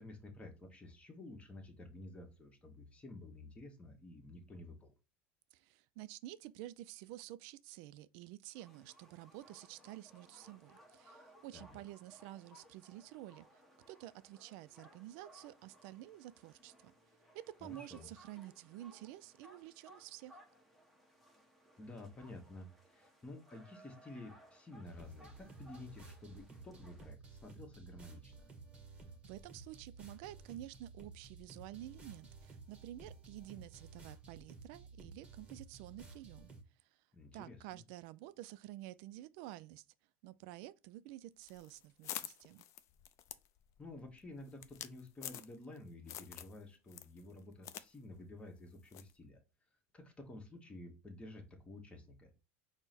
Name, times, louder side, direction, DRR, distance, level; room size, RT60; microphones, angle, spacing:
voice 1, 0.0-4.9 11.5-11.8 17.6-18.1 21.8-28.4 37.1-37.8 43.8-49.4 49.9-52.3, left 2 dB, 20° left, 1.2 m, -52 dB
voice 2, 5.5-13.6 13.9-16.9 17.3-20.4 29.2-36.5 36.8-37.0 37.3-39.8 40.2-42.7, right 15 dB, 70° right, 0.3 m, -50 dB
sound 1, 8.5-27.1, right 1 dB, ahead, 0.9 m, -63 dB
sound 2, 24.8-36.6, right 3 dB, 20° right, 1.2 m, -54 dB
sound 3, 41.4-45.8 46.1-46.6 46.9-47.9 48.1-48.2 48.9-49.1, left 11 dB, 50° left, 0.4 m, -47 dB
4.5 x 2.1 x 4.1 m
supercardioid pair, 105°, 6 cm